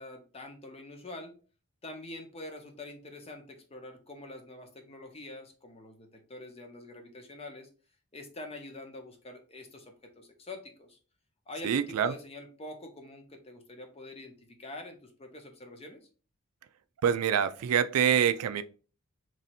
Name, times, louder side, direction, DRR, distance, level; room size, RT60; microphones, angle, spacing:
voice 1, 0.0-1.3 1.8-7.7 8.1-11.0 11.5-16.1, left 2 dB, 25° left, 0.7 m, -45 dB
voice 2, 11.6-12.1 17.0-18.6, right 8 dB, 80° right, 0.4 m, -25 dB
3.1 x 2.7 x 4.1 m
head